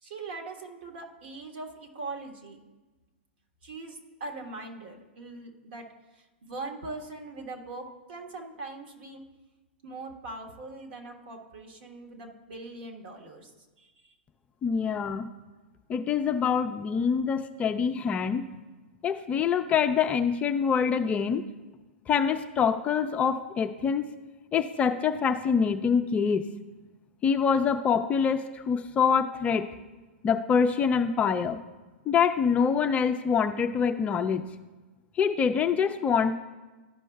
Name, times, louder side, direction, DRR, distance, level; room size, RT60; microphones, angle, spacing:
voice 1, 0.0-2.6 3.6-5.8 6.1-9.2 9.8-13.5 13.8-14.1, right 3 dB, 65° right, 2 dB, 1.4 m, -41 dB
voice 2, 14.6-15.3 15.9-18.4 19.0-21.4 22.1-24.1 24.5-26.5 27.2-29.7 30.2-31.6 32.1-34.4 35.2-36.3, left 6 dB, 20° left, 7 dB, 0.4 m, -25 dB
13.0 x 5.3 x 2.2 m, 1.2 s
hypercardioid pair, 115°, 6 cm